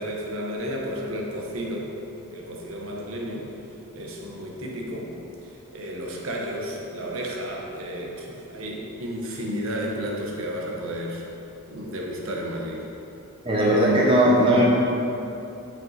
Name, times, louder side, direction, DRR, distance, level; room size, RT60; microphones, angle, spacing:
voice 1, 0.0-1.9 2.3-3.5 3.9-5.1 5.7-11.2 11.7-12.9, equal, 65° right, -2 dB, 0.9 m, -32 dB
voice 2, 13.4-14.6, right 1 dB, 25° right, -4 dB, 0.8 m, -18 dB
7.0 x 4.6 x 4.0 m, 2.9 s
head